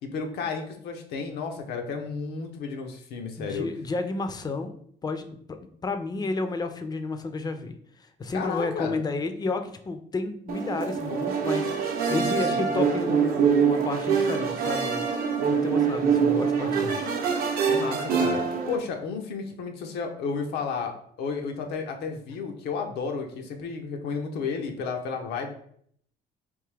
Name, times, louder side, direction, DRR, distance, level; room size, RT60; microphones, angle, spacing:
voice 1, 0.0-3.7 8.3-8.9 12.0-12.7 17.6-25.5, left 5 dB, 80° left, 4 dB, 0.7 m, -32 dB
voice 2, 3.4-4.7 5.0-5.2 5.5-7.8 8.2-15.0 15.4-17.1, left 3 dB, 25° left, 8 dB, 0.4 m, -31 dB
sound 1, 10.5-18.8, right 6 dB, 60° right, 0.6 m, -25 dB
3.5 x 2.6 x 3.3 m, 0.65 s
cardioid pair, 110°, 17 cm